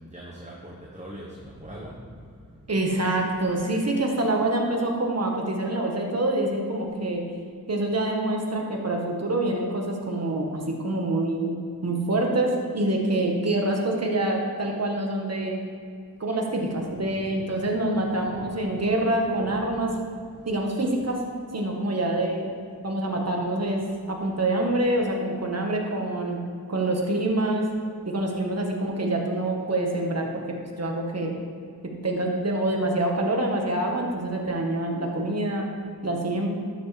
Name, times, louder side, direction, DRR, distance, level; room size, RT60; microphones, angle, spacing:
voice 1, 0.0-2.4 3.1-3.3 17.1-19.1 19.4-19.9 20.4-20.5 20.9-21.0, equal, 20° right, -3 dB, 1.2 m, -43 dB
voice 2, 2.7-7.2 7.7-15.6 16.2-19.9 20.4-21.2 21.5-22.5 22.8-23.8 24.1-26.4 26.7-27.7 28.0-31.3 31.8-35.7 36.0-36.5, right 1 dB, 45° right, 0 dB, 1.5 m, -26 dB
12.0 x 7.3 x 3.4 m, 2.2 s
wide cardioid pair, 80°, 37 cm